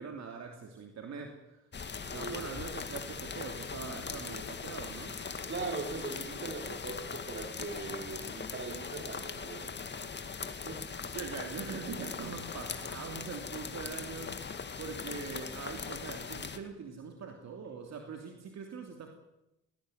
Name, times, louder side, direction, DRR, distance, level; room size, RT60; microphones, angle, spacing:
voice 1, 0.0-1.7 2.1-5.2 11.0-19.1, right 5 dB, 60° right, 3 dB, 3.1 m, -43 dB
sound 1, 1.7-16.6, left 5 dB, 35° left, 2.2 m, -40 dB
voice 2, 2.1-2.5 5.5-9.7 10.5-10.8, right 3 dB, 40° right, 5 dB, 4.7 m, -40 dB
20.0 x 19.0 x 9.4 m, 0.91 s
cardioid pair, 90°, 30 cm